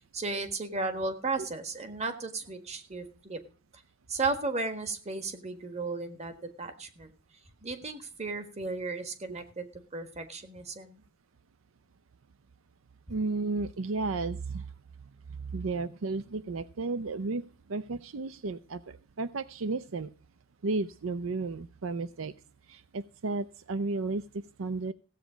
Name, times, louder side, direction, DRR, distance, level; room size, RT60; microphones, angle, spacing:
voice 1, 0.1-3.4 4.1-7.1 7.6-9.7 9.9-11.0, right 3 dB, 30° right, 8 dB, 1.6 m, -34 dB
voice 2, 13.1-14.7 15.5-17.4 17.7-20.1 20.6-22.3 22.7-24.9, right 3 dB, 70° right, 14 dB, 0.6 m, -33 dB
16.0 x 8.2 x 5.0 m, 0.37 s
head